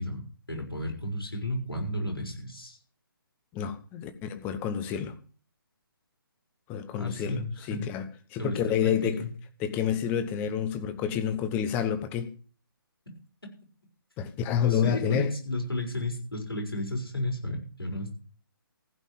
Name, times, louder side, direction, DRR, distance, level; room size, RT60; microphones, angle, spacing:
voice 1, 0.0-2.8 6.9-7.9 8.4-9.3 14.6-18.1, left 1 dB, 80° left, 6.2 m, -33 dB
voice 2, 3.5-5.2 6.7-7.4 7.7-9.2 9.6-12.3 14.2-15.3, left 8 dB, 15° left, 0.9 m, -29 dB
15.5 x 5.6 x 9.1 m
figure-of-eight pair, 140°, 12 cm